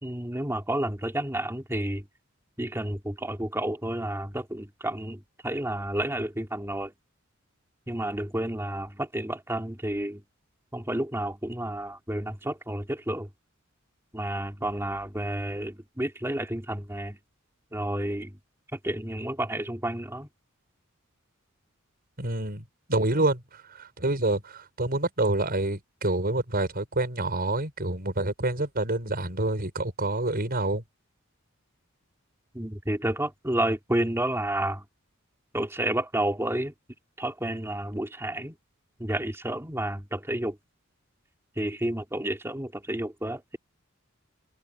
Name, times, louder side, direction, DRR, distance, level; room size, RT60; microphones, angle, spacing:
voice 1, 0.0-2.1 2.6-6.9 7.9-10.2 10.7-13.3 14.1-17.2 17.7-18.4 18.7-20.3 32.5-34.8 35.5-36.7 37.2-38.5 39.0-40.6 41.6-43.6, right 1 dB, 10° right, 2.9 m, -30 dB
voice 2, 22.2-22.6 22.9-30.8, right 2 dB, 45° right, 5.6 m, -27 dB
open air
head